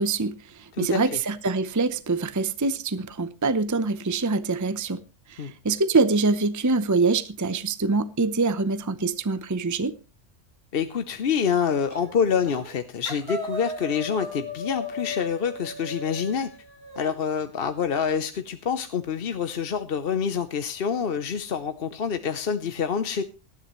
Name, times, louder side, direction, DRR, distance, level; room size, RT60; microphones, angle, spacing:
voice 1, 0.0-5.0 5.3-9.9, right 3 dB, 20° right, 0.6 m, -24 dB
voice 2, 10.7-16.5 17.0-23.2, left 7 dB, 55° left, 1.0 m, -26 dB
sound 1, 11.9-12.2 12.4-12.8 13.1-17.1, left 2 dB, 55° right, 3.2 m, -36 dB
18.5 x 13.5 x 3.1 m
omnidirectional pair, 1.2 m